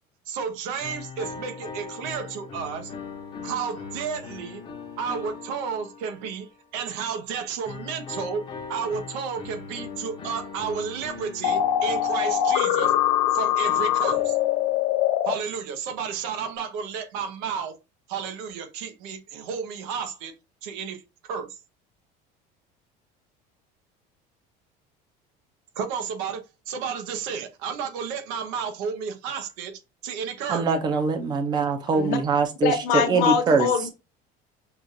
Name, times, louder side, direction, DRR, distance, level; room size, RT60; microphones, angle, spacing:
voice 1, 0.3-2.9 3.4-4.6 5.0-8.4 8.7-12.9 13.3-14.4 15.3-17.8 18.1-20.3 20.6-21.6 25.8-30.7, right 6 dB, 85° right, 0.9 m, -32 dB
sound 1, 0.8-6.6 7.6-15.0, left 5 dB, 25° left, 0.7 m, -40 dB
sound 2, 11.4-15.3, left 11 dB, 80° left, 0.6 m, -23 dB
voice 2, 30.5-33.7, right 4 dB, 25° right, 0.6 m, -23 dB
voice 3, 32.6-33.9, left 7 dB, 55° left, 1.0 m, -23 dB
6.0 x 2.4 x 2.7 m
cardioid pair, 170°, 18 cm